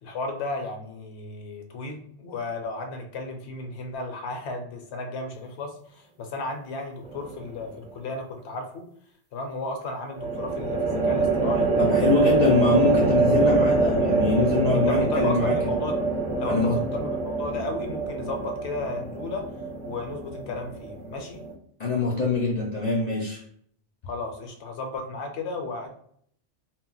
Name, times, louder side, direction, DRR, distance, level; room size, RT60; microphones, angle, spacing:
voice 1, 0.0-8.8 9.3-11.7 12.2-12.4 14.9-16.0 16.4-19.5 19.8-21.4 24.1-25.9, left 3 dB, 70° left, 5 dB, 0.8 m, -34 dB
sound 1, 7.0-7.6 10.2-21.5, right 3 dB, 45° right, 0.8 m, -25 dB
voice 2, 11.8-15.6 16.4-16.8 21.8-23.4, left 4 dB, 55° left, -3 dB, 0.5 m, -24 dB
2.2 x 2.1 x 3.7 m, 0.64 s
omnidirectional pair, 1.2 m